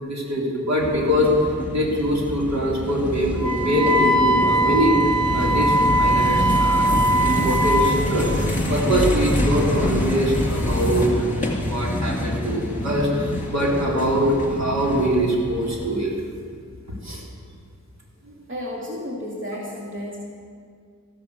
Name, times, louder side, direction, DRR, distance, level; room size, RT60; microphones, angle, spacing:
voice 1, 0.0-1.3 1.7-5.0 5.3-11.1 11.6-16.2 17.0-17.2, equal, 60° right, -3 dB, 3.4 m, -23 dB
sound 1, 0.8-15.8, left 1 dB, 25° left, 3.1 m, -26 dB
Wind instrument woodwind instrument, 3.4-8.0, right 1 dB, ahead, 2.3 m, -20 dB
voice 2, 18.5-20.3, left 1 dB, 40° right, -5 dB, 2.7 m, -32 dB
14.5 x 12.0 x 6.8 m, 2.1 s
wide cardioid pair, 90°, 31 cm